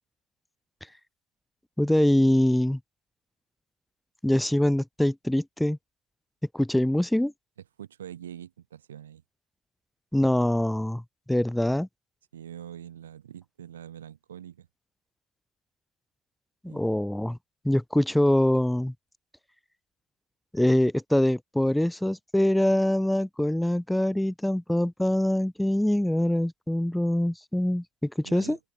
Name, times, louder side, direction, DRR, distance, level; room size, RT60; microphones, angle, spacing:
voice 1, 1.8-2.8 4.2-5.8 6.5-7.3 10.1-11.0 11.3-11.9 16.6-17.4 17.6-18.9 20.5-28.6, left 1 dB, 5° left, 0.7 m, -24 dB
voice 2, 7.8-9.2 12.3-14.7 16.6-17.0 28.2-28.6, right 10 dB, 85° right, 1.4 m, -44 dB
open air
hypercardioid pair, 60°, 0 cm